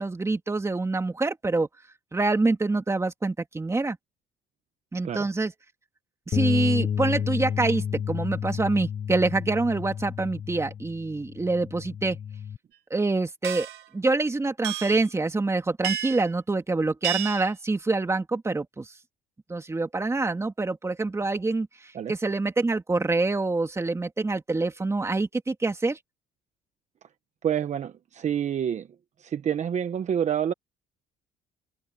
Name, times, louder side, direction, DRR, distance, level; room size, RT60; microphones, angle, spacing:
voice 1, 0.0-1.7 2.1-4.0 4.9-5.5 6.3-12.2 12.9-13.7 13.9-18.9 19.5-26.0, right 3 dB, 15° right, 2.5 m, -26 dB
Bass guitar, 6.3-12.6, left 8 dB, 35° left, 0.5 m, -30 dB
sound 1, 13.4-13.8 14.6-15.0 15.8-16.3 17.0-17.5, right 11 dB, 80° right, 2.0 m, -31 dB
voice 2, 27.4-28.9 29.2-30.5, right 9 dB, 45° right, 1.1 m, -27 dB
cardioid pair, 110°, 17 cm